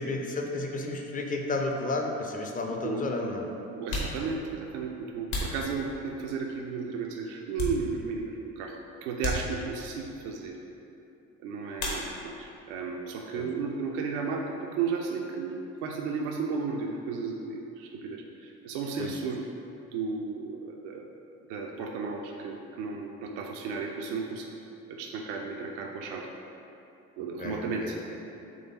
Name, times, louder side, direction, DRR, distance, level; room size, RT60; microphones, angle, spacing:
voice 1, 0.0-3.5 13.3-13.5 19.0-19.2 27.4-28.2, left 2 dB, 20° left, 2 dB, 0.5 m, -32 dB
sound 1, 2.0-2.1 3.0-3.1 3.7-6.4 6.9-8.3 8.6-8.7 9.2-10.0 11.7-12.5 12.8-13.5 13.8-15.9, left 1 dB, 65° left, 1.2 m, -37 dB
voice 2, 3.7-10.6 11.4-19.4 19.9-21.1 21.5-24.5 24.9-26.3 27.2-28.0, right 5 dB, 65° right, 1 dB, 0.5 m, -34 dB
3.9 x 3.3 x 3.9 m, 2.8 s
figure-of-eight pair, 50°, 40 cm